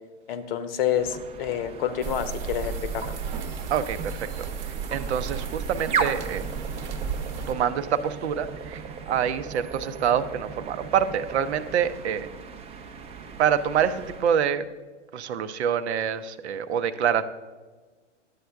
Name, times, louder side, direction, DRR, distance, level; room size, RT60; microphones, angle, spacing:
voice 1, 0.3-3.2, left 9 dB, 50° left, 11 dB, 0.9 m, -28 dB
sound 1, 0.9-14.3, right 6 dB, 15° right, 0.6 m, -37 dB
sound 2, 2.0-7.5, right 6 dB, 35° right, 1.0 m, -33 dB
voice 2, 3.7-6.4 7.5-12.3 13.4-14.7 15.1-17.2, right 8 dB, 65° right, 12 dB, 0.7 m, -26 dB
11.0 x 8.0 x 3.4 m, 1.4 s
hypercardioid pair, 115°, 36 cm